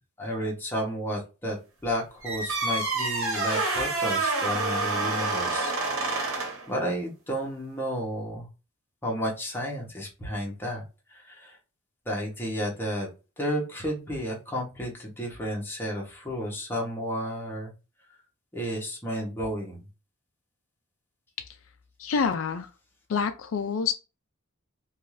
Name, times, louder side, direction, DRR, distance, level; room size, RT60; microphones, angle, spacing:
voice 1, 0.2-1.6 1.8-5.7 6.7-8.5 9.0-10.8 11.1-11.6 12.1-13.1 13.4-17.7 18.5-19.8, equal, 10° left, 0.9 m, -32 dB
sound 1, 2.2-6.7, right 3 dB, 70° right, 1.1 m, -28 dB
voice 2, 22.0-22.7 23.1-23.9, left 6 dB, 65° left, 0.3 m, -27 dB
2.6 x 2.3 x 3.0 m
head